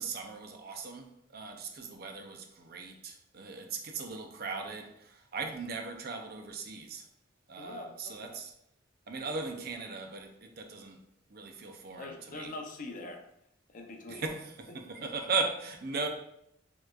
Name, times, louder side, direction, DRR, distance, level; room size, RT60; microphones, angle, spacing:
voice 1, 0.0-7.0 7.5-8.5 9.1-11.0 11.3-12.5 14.1-16.1, right 4 dB, 55° right, 5 dB, 0.5 m, -38 dB
voice 2, 7.6-8.4 12.0-13.2 13.7-14.3, left 2 dB, 45° left, 3 dB, 0.6 m, -43 dB
6.5 x 3.1 x 2.3 m, 0.77 s
head